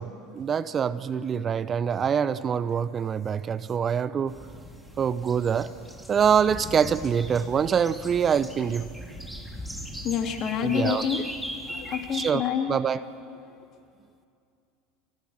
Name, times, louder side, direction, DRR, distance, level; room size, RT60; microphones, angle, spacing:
voice 1, 0.0-4.4 5.0-5.7 6.1-8.9 10.6-11.1 12.1-13.0, right 7 dB, 35° right, 15 dB, 0.8 m, -25 dB
sound 1, 4.3-12.3, equal, 5° right, 3.8 m, -39 dB
voice 2, 10.0-11.2 11.7-12.7, left 9 dB, 45° left, 4 dB, 3.2 m, -27 dB
30.0 x 26.5 x 7.5 m, 2.5 s
hypercardioid pair, 75°, 0 cm